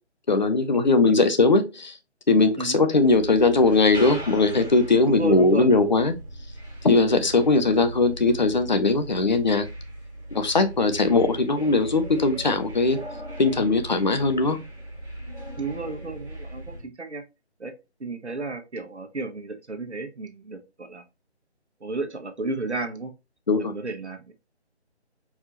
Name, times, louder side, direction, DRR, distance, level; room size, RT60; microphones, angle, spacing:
voice 1, 0.3-2.0 2.3-6.1 6.8-9.7 10.3-13.0 13.4-14.6 23.5-23.7, left 3 dB, 40° left, 0.7 m, -20 dB
sound 1, 3.0-16.8, right 1 dB, 5° right, 1.0 m, -38 dB
voice 2, 5.1-5.7 15.6-17.2 17.6-17.7 18.0-21.0 21.8-23.1 23.6-24.3, right 3 dB, 75° right, 1.1 m, -32 dB
4.6 x 3.6 x 2.9 m
figure-of-eight pair, 155°, 34 cm